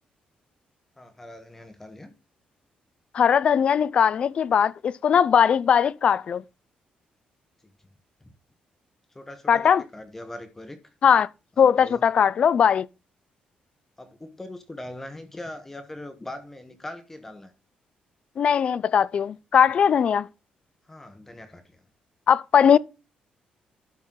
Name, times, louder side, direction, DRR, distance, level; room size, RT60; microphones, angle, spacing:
voice 1, 1.0-2.1 8.2-8.3 9.1-10.9 11.6-12.0 14.0-17.5 20.8-21.8, left 1 dB, 10° left, 0.9 m, -41 dB
voice 2, 3.1-6.4 9.5-9.8 11.0-11.3 11.6-12.9 18.4-20.3 22.3-22.8, left 7 dB, 40° left, 0.4 m, -19 dB
12.0 x 4.4 x 3.7 m
cardioid pair, 170°, 3 cm